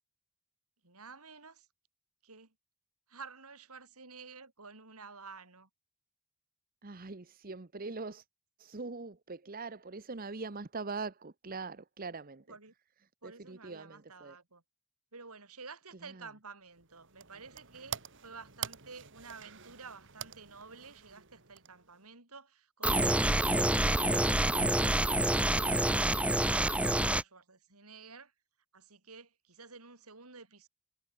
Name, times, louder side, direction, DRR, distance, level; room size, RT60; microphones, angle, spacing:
voice 1, 0.8-1.7 2.2-2.6 3.1-5.7 12.5-12.7 13.2-14.6 15.1-28.3 28.7-30.7, right 4 dB, 85° right, 5.3 m, -51 dB
voice 2, 6.8-8.2 8.6-12.5 13.2-14.4 16.1-16.3, right 4 dB, 40° right, 0.9 m, -42 dB
sound 1, 16.7-22.1, right 8 dB, 55° right, 2.8 m, -46 dB
sound 2, 22.8-27.2, right 1 dB, 5° right, 0.6 m, -27 dB
head